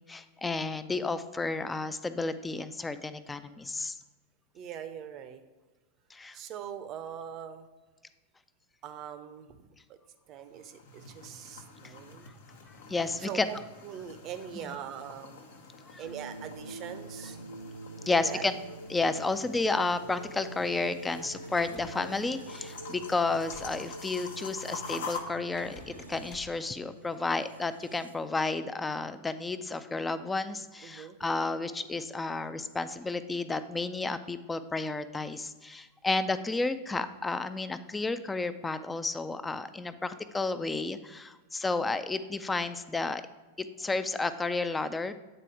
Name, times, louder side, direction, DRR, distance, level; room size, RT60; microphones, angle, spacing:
voice 1, 0.0-3.9 6.1-6.4 12.9-13.5 15.9-16.0 18.1-18.5 18.9-43.2 43.6-45.1, left 3 dB, 10° left, 12 dB, 0.4 m, -32 dB
voice 2, 4.5-5.4 6.3-7.7 8.8-9.7 10.3-12.3 13.2-13.6 13.8-15.4 16.0-17.4 18.2-18.4 30.8-31.2, right 9 dB, 35° right, 9 dB, 0.6 m, -42 dB
sound 1, 10.4-25.2, left 4 dB, 60° left, 0.9 m, -46 dB
sound 2, 16.0-28.3, right 1 dB, 80° right, 0.4 m, -45 dB
Sliding door, 21.5-23.8 25.5-26.6, left 2 dB, 40° left, 1.1 m, -51 dB
8.9 x 4.1 x 4.7 m, 1.2 s
figure-of-eight pair, 90°, 0 cm